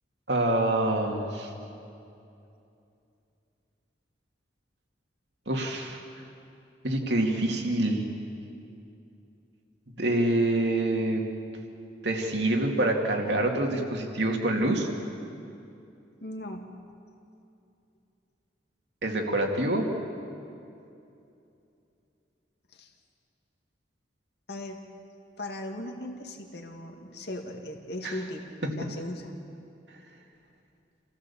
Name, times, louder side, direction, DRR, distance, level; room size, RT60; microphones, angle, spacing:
voice 1, 0.3-1.5 5.5-6.0 6.8-8.0 9.9-11.2 12.0-14.9 19.0-19.9 28.0-28.2, right 1 dB, 70° right, 2 dB, 2.5 m, -26 dB
voice 2, 16.2-16.7 22.7-22.9 24.5-24.9 25.4-28.5 28.8-29.3, left 1 dB, 65° left, 3 dB, 2.2 m, -38 dB
28.0 x 16.0 x 7.2 m, 2.6 s
head